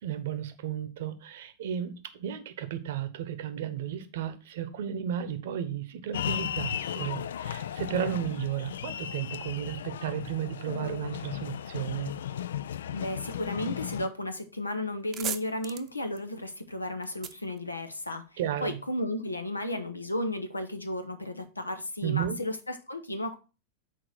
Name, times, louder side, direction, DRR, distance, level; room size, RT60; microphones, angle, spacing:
voice 1, 0.0-12.2 18.4-18.8 22.0-22.4, right 10 dB, 55° right, 0.9 m, -33 dB
sound 1, 6.1-14.1, left 10 dB, 60° left, 0.3 m, -35 dB
voice 2, 12.9-23.4, left 1 dB, 80° left, 0.9 m, -34 dB
sound 2, 14.4-14.5 14.8-18.4, right 9 dB, 30° right, 0.7 m, -40 dB
6.6 x 4.6 x 6.1 m
figure-of-eight pair, 90°, 0 cm